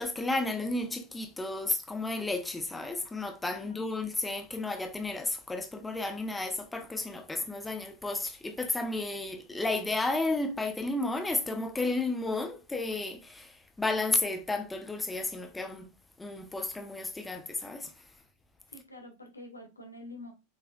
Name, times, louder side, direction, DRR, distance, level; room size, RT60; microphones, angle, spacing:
voice 1, 0.0-15.9 16.2-18.0, left 2 dB, 10° left, 1.0 m, -32 dB
voice 2, 3.6-3.9 9.5-9.6 18.7-20.3, left 1 dB, 80° left, 1.9 m, -47 dB
7.6 x 5.9 x 2.4 m
figure-of-eight pair, 90°, 0 cm